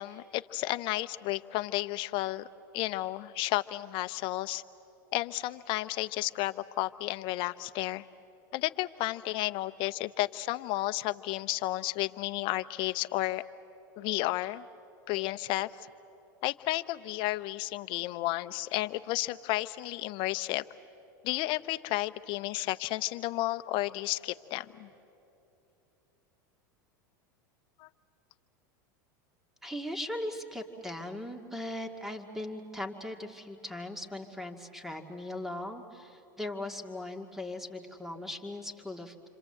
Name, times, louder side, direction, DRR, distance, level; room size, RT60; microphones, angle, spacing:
voice 1, 0.0-2.5 2.7-4.6 5.1-8.0 8.5-13.4 14.0-14.7 15.1-15.9 16.4-20.6 21.2-24.9 27.8-27.9, left 17 dB, 55° left, 12 dB, 0.8 m, -32 dB
voice 2, 29.6-39.3, left 1 dB, 5° right, 4 dB, 2.2 m, -39 dB
27.5 x 26.0 x 7.9 m, 2.9 s
hypercardioid pair, 100°, 11 cm